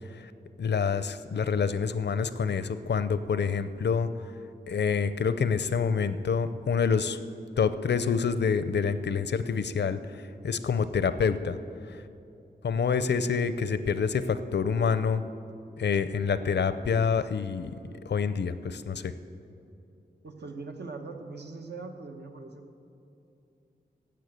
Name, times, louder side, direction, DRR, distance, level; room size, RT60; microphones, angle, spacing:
voice 1, 0.6-4.1 4.7-7.2 7.6-11.6 12.6-15.2 15.8-17.7 18.1-19.1, left 6 dB, 85° left, 12 dB, 0.6 m, -27 dB
voice 2, 20.2-22.8, right 3 dB, 80° right, 4 dB, 1.1 m, -41 dB
12.0 x 7.8 x 7.9 m, 2.8 s
wide cardioid pair, 100°, 17 cm